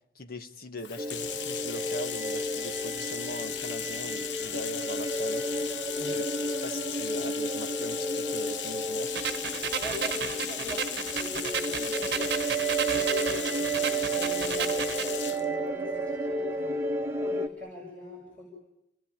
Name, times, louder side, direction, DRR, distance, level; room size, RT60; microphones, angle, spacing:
voice 1, 0.2-5.5 6.1-6.2 6.6-9.1, equal, 55° left, 8 dB, 1.7 m, -40 dB
Bathtub (filling or washing), 0.8-15.5, left 9 dB, 80° left, 1.0 m, -37 dB
sound 1, 1.0-17.5, right 2 dB, 15° right, 1.6 m, -32 dB
sound 2, 9.1-15.1, right 7 dB, 65° right, 1.1 m, -33 dB
voice 2, 9.8-12.3 12.8-16.9 17.2-18.5, left 2 dB, 5° left, -3 dB, 7.3 m, -41 dB
29.5 x 20.5 x 8.9 m, 0.85 s
head